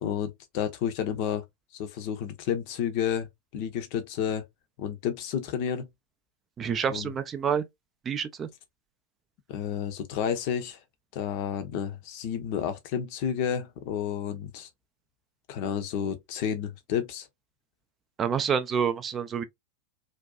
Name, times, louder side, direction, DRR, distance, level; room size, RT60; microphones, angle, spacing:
voice 1, 0.0-1.4 1.8-3.3 3.5-4.5 4.8-5.9 6.9-7.1 9.5-10.8 11.1-14.7 15.5-17.3, left 8 dB, 45° left, 0.5 m, -31 dB
voice 2, 6.6-7.6 8.1-8.5 18.2-19.4, right 7 dB, 25° right, 0.3 m, -28 dB
2.5 x 2.2 x 2.3 m
figure-of-eight pair, 90°, 0 cm